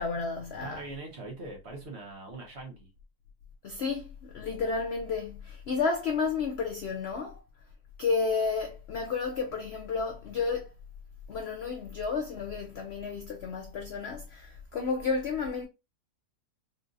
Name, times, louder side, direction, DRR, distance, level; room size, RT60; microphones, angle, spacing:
voice 1, 0.0-0.8 3.6-7.4 8.0-10.7 11.3-15.7, left 4 dB, 70° left, 0.6 m, -31 dB
voice 2, 0.6-2.9, right 2 dB, 50° right, 1.1 m, -42 dB
3.8 x 2.4 x 2.5 m
omnidirectional pair, 1.7 m